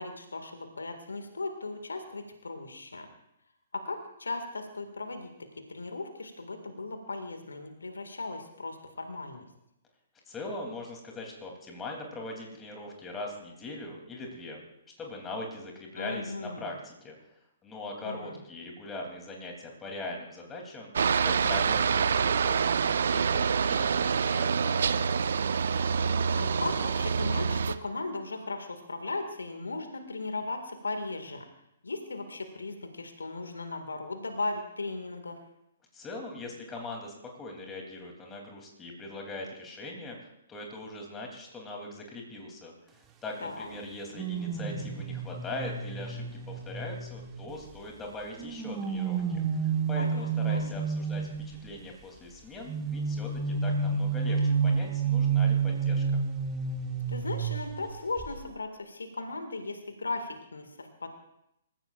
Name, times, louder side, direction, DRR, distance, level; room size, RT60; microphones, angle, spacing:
voice 1, 0.0-3.1 3.7-5.3 5.7-9.4 16.0-16.7 18.0-18.4 26.4-31.5 31.8-35.4 43.4-43.7 50.0-50.7 57.1-61.1, left 3 dB, 70° left, 6 dB, 2.0 m, -37 dB
voice 2, 10.3-14.6 15.0-17.1 17.6-20.9 21.2-24.9 35.9-42.7 43.2-56.0, left 2 dB, 15° left, 1 dB, 3.0 m, -41 dB
Aircraft, 21.0-27.8, right 6 dB, 60° right, 0.7 m, -26 dB
sound 1, 44.2-47.8 48.4-51.6 52.7-57.9 58.2-58.4, right 5 dB, 20° right, 1.3 m, -30 dB
26.5 x 15.0 x 2.5 m, 0.81 s
figure-of-eight pair, 120°, 0 cm